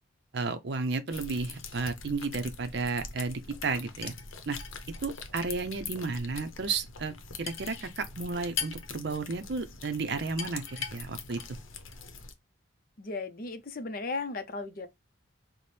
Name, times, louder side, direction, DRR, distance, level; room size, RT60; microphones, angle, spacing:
voice 1, 0.3-4.1 4.5-4.6 5.0-11.4, right 4 dB, 55° right, 0.5 m, -33 dB
sound 1, 1.1-12.3, left 6 dB, 85° left, 0.7 m, -41 dB
voice 2, 13.0-14.9, left 3 dB, 45° left, 0.5 m, -36 dB
4.2 x 2.1 x 3.2 m
head